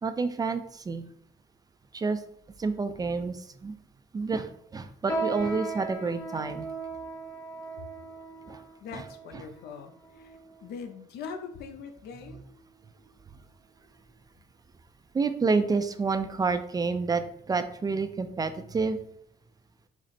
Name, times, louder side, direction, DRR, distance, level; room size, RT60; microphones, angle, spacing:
voice 1, 0.0-1.0 1.9-2.2 2.6-3.7 4.1-6.7 8.5-8.6 8.9-9.0 9.3-9.4 15.1-19.0, right 4 dB, 20° right, 9 dB, 0.4 m, -29 dB
sound 1, 5.1-10.8 11.4-11.6 12.3-12.6 13.0-13.2 13.9-14.0, right 3 dB, 20° left, 1.0 m, -37 dB
voice 2, 8.8-12.4, left 6 dB, 75° left, 6 dB, 0.7 m, -42 dB
5.9 x 2.0 x 4.2 m, 0.68 s
cardioid pair, 110°, 17 cm